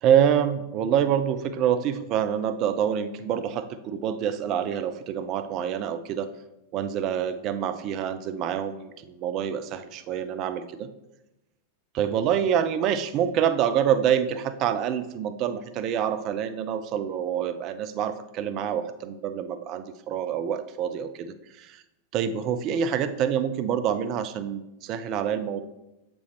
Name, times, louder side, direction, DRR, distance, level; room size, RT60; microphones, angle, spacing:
voice 1, 0.0-6.3 6.7-10.9 11.9-21.8 22.1-25.6, right 9 dB, 40° right, 11 dB, 0.4 m, -26 dB
7.8 x 5.2 x 3.0 m, 0.96 s
figure-of-eight pair, 90°, 0 cm